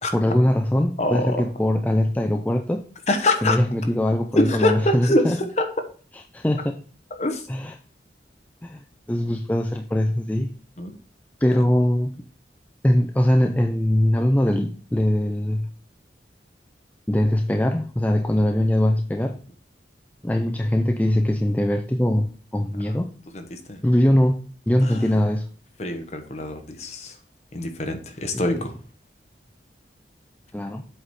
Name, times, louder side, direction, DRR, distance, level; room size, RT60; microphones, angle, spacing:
voice 1, 0.1-2.8 3.4-5.4 6.3-6.8 7.5-7.7 8.6-8.8 9.1-10.5 11.4-12.1 12.8-15.7 17.1-19.4 20.2-23.1 23.8-25.5 28.3-28.4 30.5-30.8, left 1 dB, 10° left, 0.4 m, -21 dB
voice 2, 1.0-1.4 3.1-3.6 4.3-5.2 5.6-5.7 7.2-7.5 10.8-10.9 22.8-23.0 23.3-23.8 24.8-25.2 25.8-27.2 27.5-28.7, left 1 dB, 40° left, 1.0 m, -24 dB
7.9 x 4.2 x 4.7 m
head